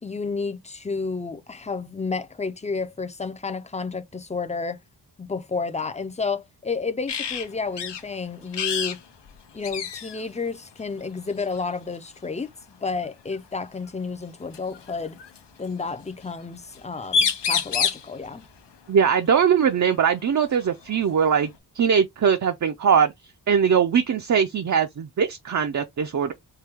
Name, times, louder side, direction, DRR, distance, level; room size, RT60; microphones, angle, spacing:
voice 1, 0.0-4.8 5.2-9.0 9.5-12.5 12.8-15.2 15.6-18.4, left 4 dB, 15° left, 0.4 m, -31 dB
sound 1, 7.1-7.5 7.8-8.0 8.5-9.0 9.3-9.4 9.6-10.2 11.4-11.6 13.3-13.4 14.5-15.4 16.7-16.8 17.0-18.1 20.0-20.1 20.6-21.6, left 6 dB, 85° left, 0.8 m, -27 dB
voice 2, 18.9-21.5 21.7-23.1 23.5-26.3, right 7 dB, 45° right, 0.5 m, -21 dB
4.5 x 2.2 x 3.4 m
wide cardioid pair, 130°, 41 cm